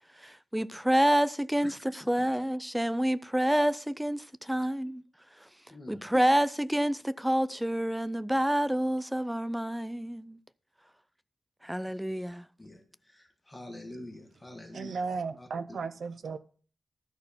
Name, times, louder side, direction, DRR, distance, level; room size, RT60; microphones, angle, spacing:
voice 1, 0.2-1.7 2.1-5.0 5.9-10.4 11.6-12.5, right 1 dB, 5° right, 0.4 m, -28 dB
voice 2, 2.0-2.4 4.5-4.6 5.7-6.1 12.6-14.9 15.4-15.5, left 1 dB, 10° left, 1.6 m, -46 dB
voice 3, 14.7-16.4, right 5 dB, 70° right, 0.6 m, -35 dB
12.5 x 4.4 x 7.0 m
wide cardioid pair, 180°, 0 cm